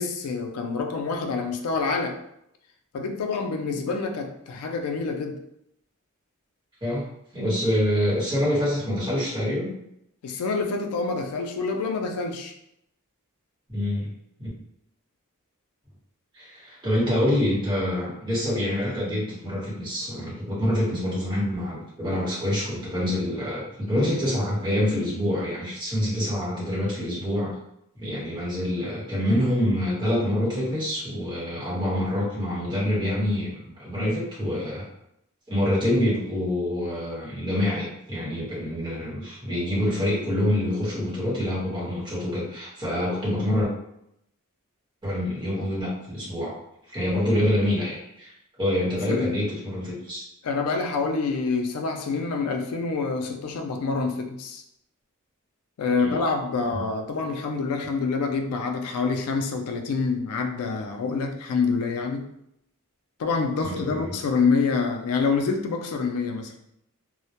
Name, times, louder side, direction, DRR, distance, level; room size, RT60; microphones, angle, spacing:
voice 1, 0.0-2.2 2.9-5.4 10.2-12.5 49.1-49.4 50.4-54.6 55.8-62.3 63.2-66.6, left 4 dB, 85° left, 4 dB, 0.4 m, -27 dB
voice 2, 7.3-9.8 13.7-14.1 14.4-14.5 16.3-27.5 27.9-34.8 35.5-43.7 45.0-46.5 46.9-48.3 48.6-50.2 56.0-56.2 56.7-56.8 63.6-64.2, left 1 dB, 20° right, -7 dB, 1.0 m, -26 dB
2.1 x 2.1 x 2.8 m, 0.78 s
head